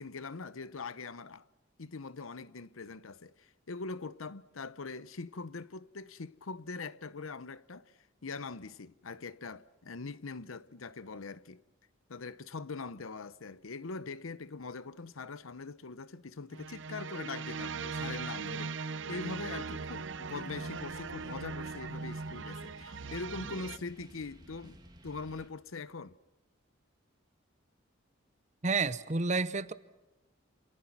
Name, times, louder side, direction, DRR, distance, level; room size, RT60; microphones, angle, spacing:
voice 1, 0.0-1.5 1.8-7.9 8.2-11.6 12.1-26.2, left 4 dB, 85° left, 0.8 m, -42 dB
sound 1, 16.5-23.8, right 4 dB, 65° right, 0.8 m, -39 dB
sound 2, 19.6-25.5, equal, 20° right, 2.2 m, -54 dB
voice 2, 28.6-29.7, right 4 dB, 35° right, 0.8 m, -30 dB
28.5 x 28.0 x 6.0 m
head